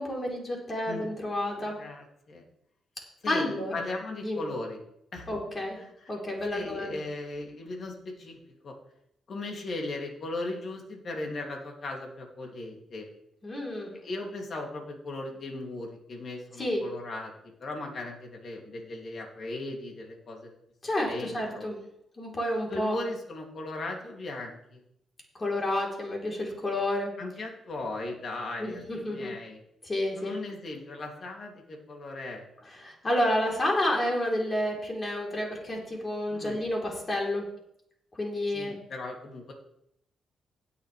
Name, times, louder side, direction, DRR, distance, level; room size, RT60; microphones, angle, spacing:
voice 1, 0.0-1.7 3.3-3.8 4.2-4.4 5.3-5.8 6.1-7.0 13.4-13.9 16.6-16.8 20.8-21.8 22.2-23.0 25.4-27.1 28.6-29.4 29.8-30.4 32.8-37.4 38.2-38.8, left 1 dB, 30° left, -1 dB, 3.8 m, -30 dB
voice 2, 1.5-2.4 3.2-4.8 5.1-5.3 5.8-6.1 6.5-8.4 8.6-8.7 9.3-13.1 14.0-20.6 21.0-21.7 22.7-24.8 27.2-29.6 30.2-32.4 36.3-36.6 38.5-39.5, left 2 dB, 55° left, 1 dB, 2.8 m, -37 dB
17.0 x 6.9 x 3.4 m, 0.77 s
cardioid pair, 75°, 0 cm